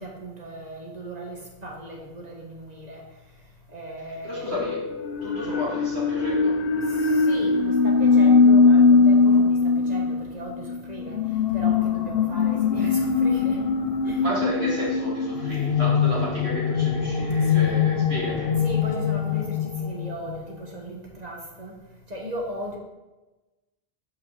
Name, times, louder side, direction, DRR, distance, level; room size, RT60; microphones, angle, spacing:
voice 1, 0.0-3.0 3.7-4.5 6.9-11.2 11.5-13.6 14.0-14.2 17.4-17.8 18.6-21.8 22.1-22.8, right 1 dB, 40° right, -1 dB, 1.6 m, -37 dB
voice 2, 4.2-4.9 5.2-6.6 14.2-18.6, equal, 70° right, -6 dB, 2.8 m, -32 dB
sound 1, 4.5-20.7, left 5 dB, 60° left, 0.8 m, -21 dB
5.8 x 4.9 x 6.4 m, 1.1 s
omnidirectional pair, 1.1 m